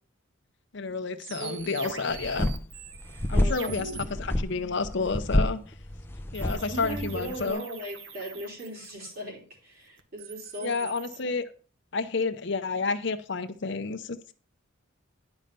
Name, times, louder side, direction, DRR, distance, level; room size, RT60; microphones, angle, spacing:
voice 1, 0.7-2.5 3.3-3.9 4.2-5.6 6.3-7.6 10.6-11.4 11.9-14.3, left 4 dB, 55° left, 0.7 m, -30 dB
sound 1, 1.2-4.0 6.3-9.2 10.0-11.2, right 5 dB, 60° right, 1.1 m, -43 dB
voice 2, 1.4-2.1 3.1-3.8 6.5-10.9 11.2-11.3, right 1 dB, 45° right, 3.7 m, -39 dB
sound 2, 2.1-7.5, left 1 dB, 10° left, 0.5 m, -29 dB
10.5 x 5.3 x 5.3 m
head